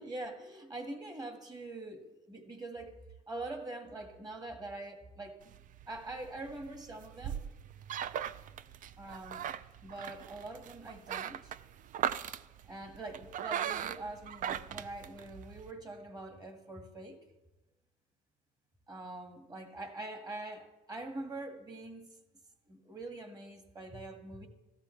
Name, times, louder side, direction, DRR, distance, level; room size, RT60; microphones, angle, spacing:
voice 1, 0.0-3.0 3.3-5.4 5.9-7.4 9.0-9.5 9.8-11.5 12.6-17.2 18.9-22.1 22.7-24.5, right 2 dB, 25° right, 4 dB, 1.8 m, -44 dB
sound 1, 5.4-15.7, right 10 dB, 50° right, 0.5 m, -39 dB
15.0 x 13.5 x 3.3 m, 1.0 s
cardioid pair, 110°, 17 cm